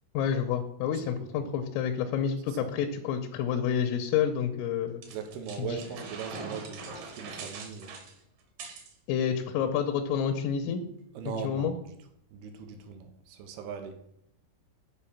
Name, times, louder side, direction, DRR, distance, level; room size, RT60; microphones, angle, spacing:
voice 1, 0.1-5.0 5.6-5.8 9.1-10.8 11.4-11.7, left 8 dB, 85° left, 6 dB, 3.3 m, -29 dB
voice 2, 0.9-1.4 2.5-2.7 5.1-8.0 11.1-12.0 12.3-14.0, right 6 dB, 80° right, 6 dB, 2.2 m, -40 dB
sound 1, 5.0-8.9, right 4 dB, 60° right, 2.4 m, -42 dB
8.9 x 4.9 x 7.2 m, 0.74 s
omnidirectional pair, 6.0 m